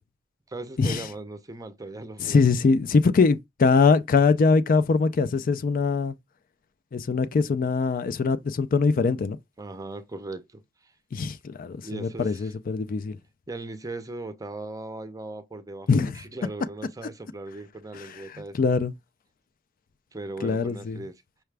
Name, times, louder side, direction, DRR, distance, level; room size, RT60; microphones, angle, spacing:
voice 1, 0.5-2.4 9.6-10.9 11.8-12.5 13.5-18.6 20.1-21.2, right 2 dB, 20° right, 0.6 m, -38 dB
voice 2, 2.2-6.1 6.9-9.4 11.1-13.2 15.9-16.2 18.0-18.9 20.4-21.0, left 4 dB, 45° left, 0.4 m, -22 dB
5.7 x 2.2 x 3.3 m
head